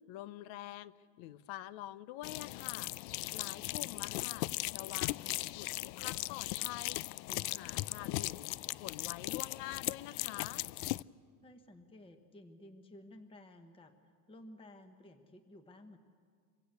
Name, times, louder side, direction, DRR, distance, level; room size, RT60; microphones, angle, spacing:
voice 1, 0.1-2.9 3.3-10.6, left 14 dB, 70° left, 16 dB, 1.0 m, -47 dB
sound 1, 2.2-11.0, left 20 dB, 90° left, 0.6 m, -38 dB
voice 2, 11.4-16.0, left 1 dB, 10° left, 7 dB, 1.1 m, -55 dB
26.5 x 23.0 x 8.3 m, 2.1 s
cardioid pair, 150°, 49 cm